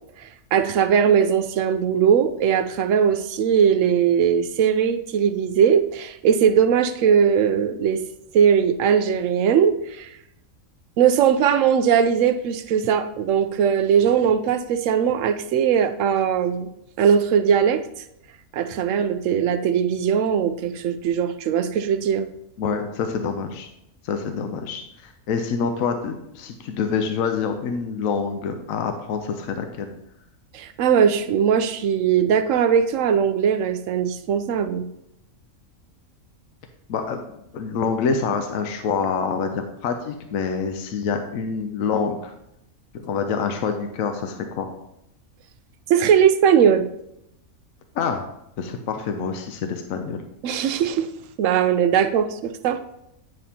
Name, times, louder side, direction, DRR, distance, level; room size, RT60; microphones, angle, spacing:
voice 1, 0.5-8.0 8.3-10.1 11.0-16.7 17.0-17.8 18.5-22.3 30.5-34.9 45.9-46.8 50.4-51.1 51.4-52.8, right 8 dB, 70° right, 10 dB, 0.9 m, -19 dB
voice 2, 22.6-23.7 24.0-29.9 36.9-37.2 37.5-42.3 43.0-44.7 47.9-48.3 48.6-50.2, left 5 dB, 75° left, 6 dB, 1.0 m, -26 dB
9.3 x 5.3 x 2.8 m, 0.80 s
omnidirectional pair, 1.5 m